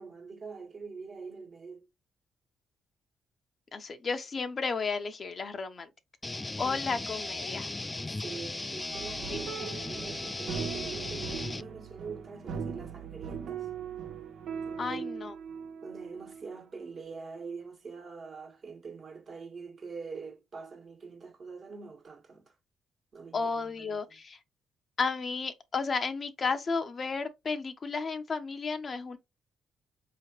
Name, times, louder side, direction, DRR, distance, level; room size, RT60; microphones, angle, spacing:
voice 1, 0.0-1.9 6.6-6.9 8.1-13.7 14.6-15.1 15.8-22.5 23.1-24.2, right 4 dB, 45° right, 1.3 m, -44 dB
voice 2, 3.7-5.9 6.6-7.7 9.3-9.4 14.8-15.3 23.3-24.4 25.0-29.2, left 4 dB, 45° left, 0.7 m, -33 dB
sound 1, 6.2-11.6, left 2 dB, 20° left, 0.3 m, -37 dB
sound 2, 8.9-16.6 16.8-16.9, right 7 dB, 65° right, 0.6 m, -39 dB
4.8 x 3.0 x 3.0 m
hypercardioid pair, 45°, 0 cm